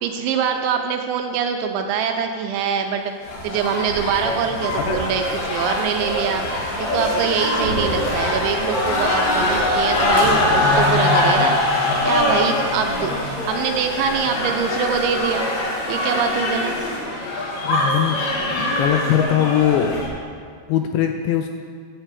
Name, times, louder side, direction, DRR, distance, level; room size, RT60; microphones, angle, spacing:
voice 1, 0.0-3.1 3.4-6.4 6.8-15.5 15.9-16.8, right 7 dB, 85° right, 4 dB, 2.8 m, -24 dB
sound 1, 2.8-17.0, equal, 45° left, 3.2 m, -37 dB
sound 2, 3.2-20.1, left 1 dB, 65° left, 4.1 m, -22 dB
voice 2, 17.6-18.2 18.6-19.9 20.7-21.5, left 10 dB, 85° left, 5 dB, 2.7 m, -20 dB
12.0 x 4.6 x 8.2 m, 2.2 s
omnidirectional pair, 5.6 m